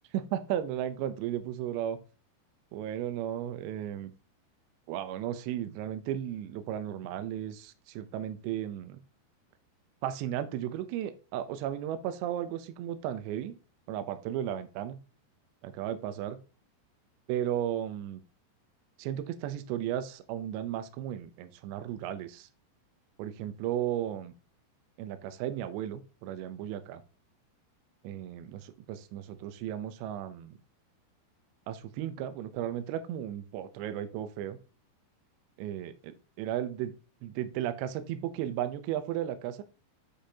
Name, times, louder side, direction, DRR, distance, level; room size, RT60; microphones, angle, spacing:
voice 1, 0.1-2.0 2.7-4.1 4.9-9.0 10.0-13.5 13.9-15.0 15.6-16.4 17.3-18.2 19.0-22.5 23.2-24.3 25.0-27.0 28.0-30.6 31.7-34.6 35.6-36.9 37.2-39.6, right 11 dB, 80° right, 9 dB, 2.7 m, -35 dB
7.9 x 6.4 x 2.8 m, 0.34 s
omnidirectional pair, 5.6 m